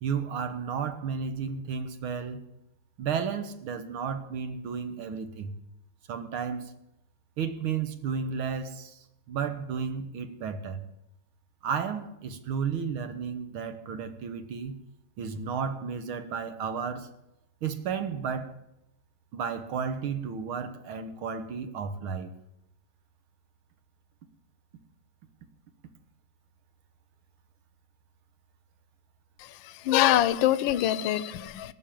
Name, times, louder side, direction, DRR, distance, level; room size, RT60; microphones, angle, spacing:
voice 1, 0.0-2.4 3.0-5.6 6.1-6.7 7.4-9.0 9.3-10.8 11.6-14.8 15.2-17.1 17.6-18.5 19.3-22.3, right 6 dB, 85° right, 2.1 m, -33 dB
voice 2, 29.4-31.7, left 13 dB, 75° left, 1.4 m, -25 dB
17.0 x 6.9 x 9.0 m
omnidirectional pair, 2.3 m